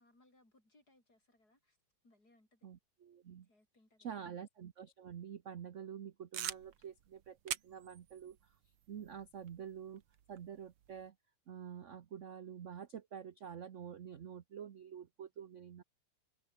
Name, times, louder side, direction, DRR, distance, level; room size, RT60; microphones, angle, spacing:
voice 1, 0.0-1.8 2.0-2.7 3.4-4.3, left 2 dB, 45° left, 8.8 m, -70 dB
voice 2, 2.6-3.5 4.0-8.4 8.9-10.0 10.3-11.1 11.5-15.8, right 8 dB, 55° right, 0.8 m, -48 dB
sound 1, 6.3-11.1, right 10 dB, 80° right, 2.2 m, -47 dB
omnidirectional pair, 2.4 m